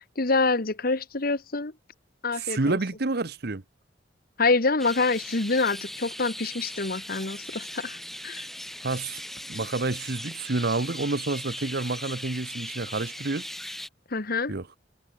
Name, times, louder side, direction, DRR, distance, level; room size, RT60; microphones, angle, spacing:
voice 1, 0.2-1.7 2.2-2.8 4.4-8.0 8.2-8.5 14.1-14.5, left 3 dB, 55° left, 1.4 m, -26 dB
voice 2, 2.4-3.6 8.8-9.2 9.5-13.5 14.5-14.7, right 3 dB, 60° right, 1.1 m, -29 dB
sound 1, 4.8-13.9, equal, ahead, 1.9 m, -39 dB
head